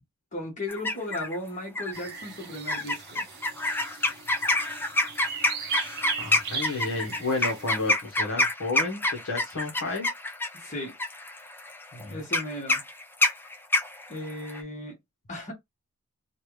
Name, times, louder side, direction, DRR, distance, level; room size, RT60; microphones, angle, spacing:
voice 1, 0.3-3.2 10.5-10.9 12.1-12.8 14.1-15.0 15.3-15.5, left 1 dB, 35° left, 1.5 m, -36 dB
sound 1, 0.7-1.4 1.8-2.1 2.7-14.6, left 2 dB, 10° left, 0.3 m, -27 dB
sound 2, 1.9-7.9, right 6 dB, 45° right, 0.8 m, -38 dB
voice 2, 6.2-10.1 11.9-12.2, left 3 dB, 60° left, 1.1 m, -31 dB
3.2 x 2.5 x 3.1 m
head